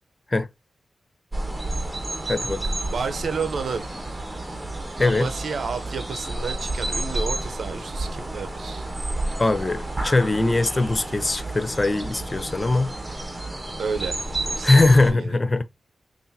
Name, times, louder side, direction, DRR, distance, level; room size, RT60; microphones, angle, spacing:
sound 1, 1.3-15.1, right 2 dB, 25° right, 1.4 m, -30 dB
voice 1, 2.3-2.6 5.0-5.3 9.4-12.9 14.6-15.6, left 2 dB, 35° left, 0.5 m, -21 dB
voice 2, 2.9-3.9 5.0-8.9 13.8-15.4, right 5 dB, 75° right, 0.7 m, -31 dB
5.5 x 2.6 x 2.7 m
cardioid pair, 45°, 0 cm